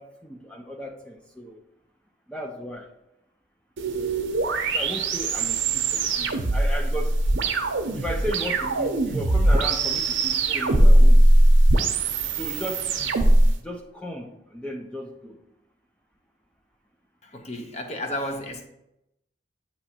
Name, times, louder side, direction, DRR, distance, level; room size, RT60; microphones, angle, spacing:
voice 1, 0.0-1.6 2.3-2.9 3.9-4.3 4.7-7.1 7.9-11.2 12.4-13.1 13.6-15.4, equal, 5° left, 1 dB, 0.4 m, -35 dB
sound 1, 3.8-13.5, right 1 dB, 80° right, 0.7 m, -20 dB
voice 2, 17.2-18.7, left 1 dB, 35° left, 4 dB, 0.8 m, -32 dB
8.6 x 3.0 x 4.3 m, 0.86 s
head